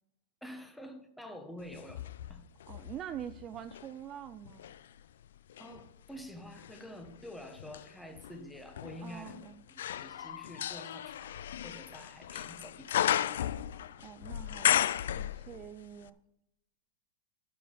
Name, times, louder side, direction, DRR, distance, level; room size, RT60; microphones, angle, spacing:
voice 1, 0.4-2.0 2.3-2.4 5.6-13.4, equal, ahead, 5 dB, 1.3 m, -48 dB
sound 1, 1.7-3.9 4.4-15.8 16.1-16.2, left 10 dB, 75° left, 0.4 m, -35 dB
voice 2, 2.7-4.7 9.0-9.6 14.0-14.7 15.2-16.2, right 10 dB, 30° right, 12 dB, 0.4 m, -44 dB
10.5 x 7.1 x 5.4 m, 0.87 s
hypercardioid pair, 130°, 0 cm